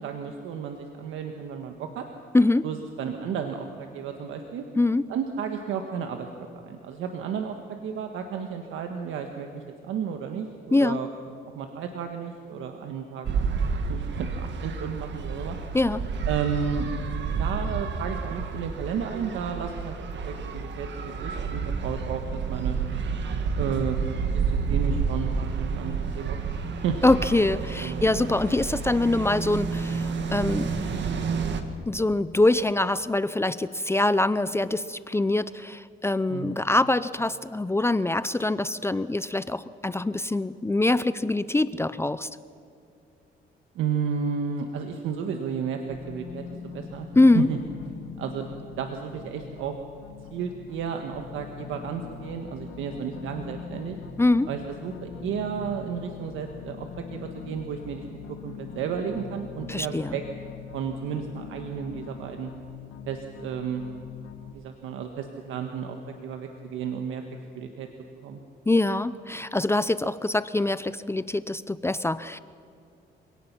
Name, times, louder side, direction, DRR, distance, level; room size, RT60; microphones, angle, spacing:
voice 1, 0.0-2.0 2.6-4.6 5.1-11.1 11.5-13.3 13.8-15.6 16.3-16.9 17.4-20.0 20.2-22.8 23.6-24.3 24.7-26.4 26.6-27.0 27.8-28.1 36.3-36.6 43.7-47.1 47.3-47.6 48.2-48.5 48.8-49.8 50.3-54.0 54.4-58.0 58.4-60.2 60.7-62.5 63.1-63.8 64.5-66.0 66.2-67.2 67.5-67.9 68.2-68.4, right 7 dB, 85° right, 5 dB, 1.5 m, -32 dB
voice 2, 2.3-2.7 4.8-5.0 10.7-11.0 15.7-16.1 27.0-30.7 31.9-42.3 47.2-47.5 54.2-54.5 59.7-60.2 68.7-72.4, left 2 dB, 15° left, 15 dB, 0.5 m, -24 dB
sound 1, 13.2-31.6, right 5 dB, 65° right, 1.7 m, -30 dB
sound 2, 45.9-64.5, left 7 dB, 90° left, 1.7 m, -42 dB
26.0 x 18.0 x 6.0 m, 2.5 s
cardioid pair, 90°, 20 cm